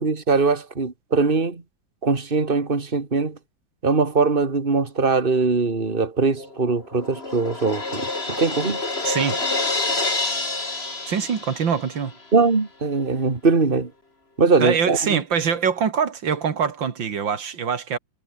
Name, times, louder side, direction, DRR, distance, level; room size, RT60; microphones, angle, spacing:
voice 1, 0.0-1.6 2.0-3.4 3.8-8.8 12.3-13.9 14.4-15.2, right 4 dB, 30° right, 2.6 m, -21 dB
Crash cymbal, 6.4-12.1, left 3 dB, 30° left, 3.5 m, -28 dB
voice 2, 9.0-9.4 11.1-12.2 14.6-18.0, right 6 dB, 85° right, 2.7 m, -24 dB
omnidirectional pair, 2.0 m